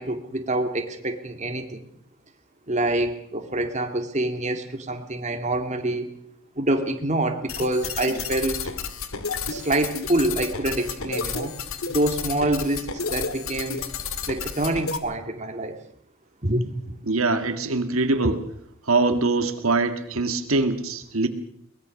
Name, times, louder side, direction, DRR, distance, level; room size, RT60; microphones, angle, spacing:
voice 1, 0.0-1.9 2.7-6.1 6.6-8.6 9.5-11.5 11.9-13.8 14.3-15.8 16.4-16.7, right 1 dB, 35° right, 5 dB, 2.1 m, -26 dB
sound 1, 7.5-15.0, left 5 dB, 80° left, 2.0 m, -32 dB
voice 2, 17.1-18.4 18.9-21.3, right 3 dB, 75° right, 8 dB, 1.8 m, -23 dB
22.5 x 20.5 x 6.5 m, 0.68 s
head